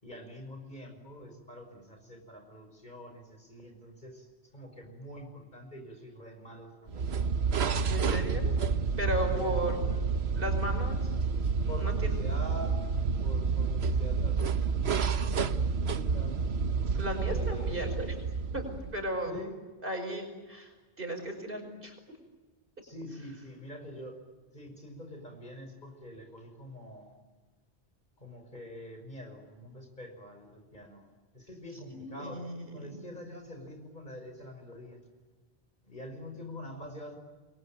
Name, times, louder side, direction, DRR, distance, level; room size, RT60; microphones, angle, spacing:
voice 1, 0.0-7.3 8.3-8.5 9.2-9.8 11.7-16.4 17.2-17.8 19.3-19.6 22.8-24.2 24.5-27.1 28.2-32.5 32.7-35.0 35.8-37.2, equal, 45° left, 5 dB, 5.9 m, -45 dB
sound 1, 6.9-19.1, right 5 dB, 70° right, 1.2 m, -29 dB
voice 2, 7.9-8.6 9.0-11.2 11.6-12.2 17.0-18.1 18.5-19.3 19.8-21.9 31.9-33.0, equal, 55° right, 5 dB, 5.5 m, -36 dB
28.5 x 22.5 x 9.1 m, 1.3 s
omnidirectional pair, 1.1 m